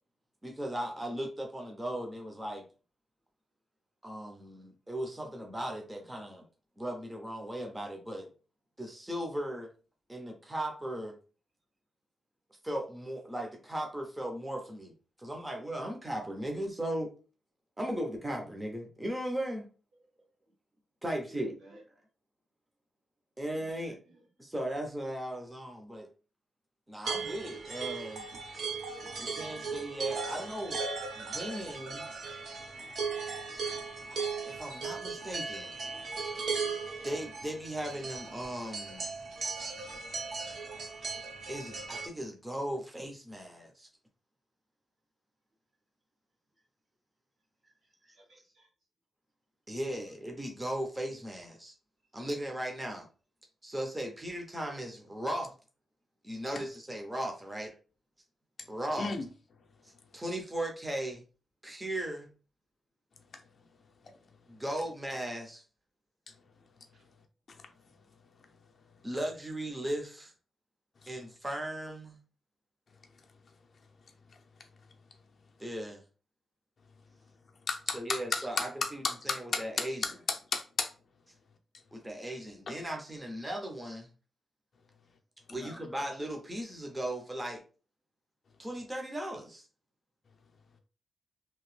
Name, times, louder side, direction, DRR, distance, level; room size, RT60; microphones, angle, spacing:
voice 1, 0.4-2.7 4.0-6.5 6.8-8.3 8.8-9.7 10.1-11.1 12.6-14.9 15.2-17.1 17.8-19.7 21.0-21.6 23.4-24.0 24.4-26.1 26.9-28.3 29.2-30.8 31.2-32.1 34.1-35.7 36.2-36.3 37.0-39.1 41.5-43.9 49.7-51.7 52.1-53.1 53.6-55.5 56.2-57.7 58.7-59.1 59.8-61.2 61.6-62.3 64.5-65.6 69.0-70.3 71.1-72.2 75.6-76.0 77.9-80.1 81.9-84.1 85.5-87.6 88.6-89.6, right 1 dB, 10° right, 0.6 m, -37 dB
voice 2, 21.3-21.8 23.5-23.7 24.1-24.2 35.7-36.2 36.6-37.2 48.2-48.7, right 1 dB, 75° right, 1.4 m, -58 dB
sound 1, 27.0-42.1, right 4 dB, 60° right, 0.7 m, -37 dB
voice 3, 77.7-78.7 79.0-79.4 79.8-80.9 85.6-85.7, left 4 dB, 45° left, 0.5 m, -33 dB
2.9 x 2.6 x 3.1 m
wide cardioid pair, 160°, 0 cm